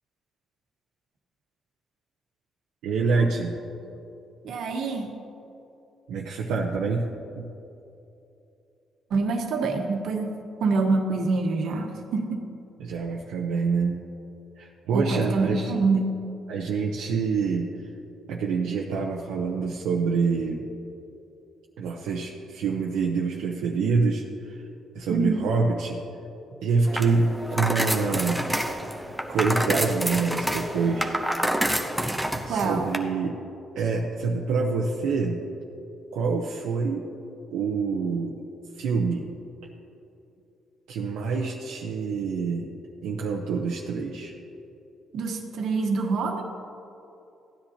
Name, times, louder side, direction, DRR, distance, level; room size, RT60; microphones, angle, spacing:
voice 1, 2.8-3.5 6.1-7.1 7.4-7.5 12.8-13.9 14.5-15.7 16.5-17.7 18.3-20.7 21.8-24.6 24.9-26.0 26.6-28.4 29.3-31.1 32.5-33.4 33.7-35.4 36.1-37.1 37.5-38.4 38.8-39.3 40.9-42.7 43.0-44.3, right 4 dB, 90° right, -2 dB, 0.8 m, -26 dB
voice 2, 4.4-5.1 9.1-10.3 10.6-12.4 14.9-16.2 25.1-25.4 32.5-32.9 45.1-46.4, right 3 dB, 75° right, 3 dB, 1.3 m, -26 dB
sound 1, 26.9-33.0, equal, ahead, 0.8 m, -28 dB
15.5 x 10.0 x 2.9 m, 2.8 s
cardioid pair, 90°, 0 cm